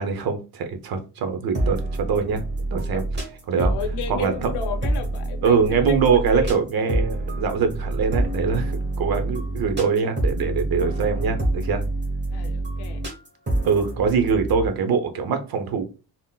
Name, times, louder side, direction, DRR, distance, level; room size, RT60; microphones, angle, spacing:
voice 1, 0.0-2.4 2.7-3.0 3.5-3.7 4.1-4.5 5.4-11.8 13.6-15.8, right 5 dB, 65° right, 0.7 m, -23 dB
sound 1, 1.5-14.7, right 2 dB, 25° right, 1.2 m, -27 dB
voice 2, 3.6-6.6 12.3-13.0, left 7 dB, 90° left, 0.7 m, -33 dB
3.7 x 2.0 x 2.2 m
cardioid pair, 90°, 39 cm